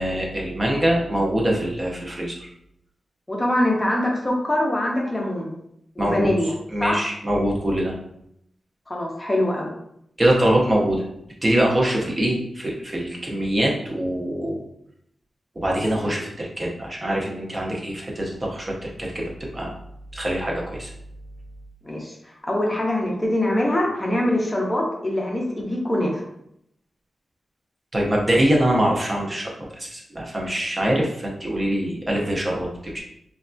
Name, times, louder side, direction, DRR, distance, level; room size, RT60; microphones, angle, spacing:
voice 1, 0.0-2.5 6.0-6.3 6.7-7.9 10.2-11.0 11.4-14.6 15.6-19.7 20.1-20.9 27.9-29.5 29.8-33.0, right 1 dB, 25° right, -2 dB, 0.6 m, -23 dB
voice 2, 3.3-5.5 6.0-6.5 6.8-7.0 8.9-9.7 21.8-26.3, left 1 dB, 15° left, -2 dB, 0.5 m, -23 dB
3.1 x 2.2 x 2.5 m, 0.75 s
wide cardioid pair, 125°, 0 cm